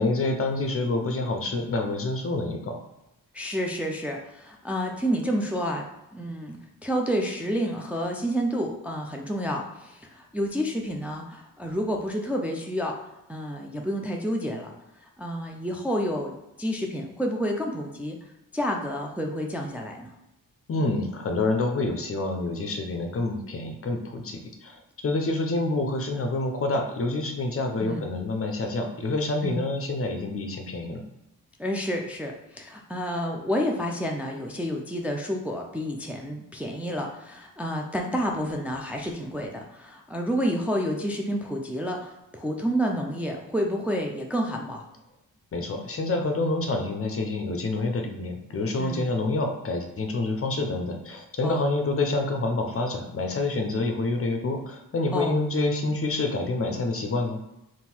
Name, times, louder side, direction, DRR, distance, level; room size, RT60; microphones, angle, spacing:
voice 1, 0.0-2.8 20.7-31.0 45.5-57.4, left 2 dB, 40° left, 3 dB, 0.6 m, -27 dB
voice 2, 3.3-5.9 6.1-13.0 13.3-14.7 15.0-18.2 18.5-20.1 27.8-28.1 29.4-29.6 31.6-44.8 48.8-49.1 51.4-51.7 55.1-55.4, equal, 5° right, 1 dB, 0.4 m, -29 dB
3.7 x 2.5 x 4.3 m, 0.93 s
wide cardioid pair, 105°, 35 cm